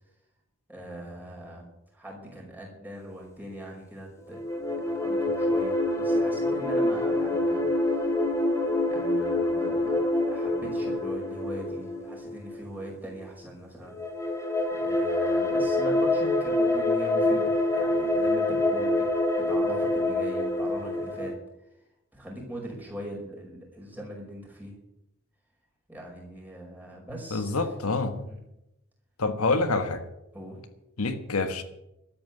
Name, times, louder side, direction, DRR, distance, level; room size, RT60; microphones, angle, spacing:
voice 1, 0.7-1.7 1.9-8.1 8.9-14.0 14.7-19.0 19.4-21.3 22.1-24.7 25.9-27.7 28.3-28.4 30.3-30.6, right 1 dB, 10° right, -2 dB, 5.2 m, -41 dB
sound 1, 4.3-12.9 13.9-21.3, left 1 dB, 15° left, 2.4 m, -26 dB
voice 2, 27.3-28.3 29.2-30.0 31.0-31.6, left 3 dB, 80° left, 8 dB, 1.4 m, -27 dB
13.0 x 8.8 x 9.4 m, 0.87 s
head